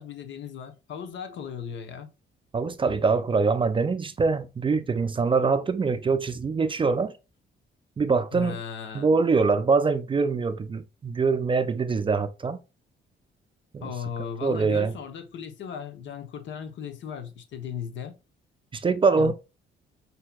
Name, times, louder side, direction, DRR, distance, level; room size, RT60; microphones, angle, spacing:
voice 1, 0.0-2.1 8.3-9.1 13.8-18.1 19.2-19.3, left 7 dB, 70° left, 0.8 m, -37 dB
voice 2, 2.5-7.1 8.0-8.6 8.9-12.6 13.7-13.9 14.4-14.9 18.7-19.3, right 4 dB, 25° right, 0.4 m, -24 dB
5.6 x 2.7 x 2.3 m
cardioid pair, 90°, 20 cm